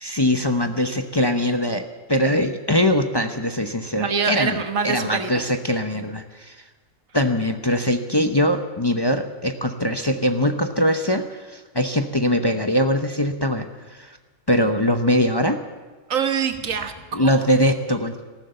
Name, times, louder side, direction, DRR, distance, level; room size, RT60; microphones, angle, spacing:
voice 1, 0.0-4.6 4.8-6.6 7.1-13.7 13.9-14.2 14.5-15.6 17.1-18.2, left 1 dB, 25° left, 6 dB, 0.7 m, -22 dB
voice 2, 4.0-5.5 16.1-17.4, right 6 dB, 90° right, 8 dB, 1.6 m, -25 dB
15.0 x 12.5 x 7.8 m, 1.4 s
omnidirectional pair, 1.3 m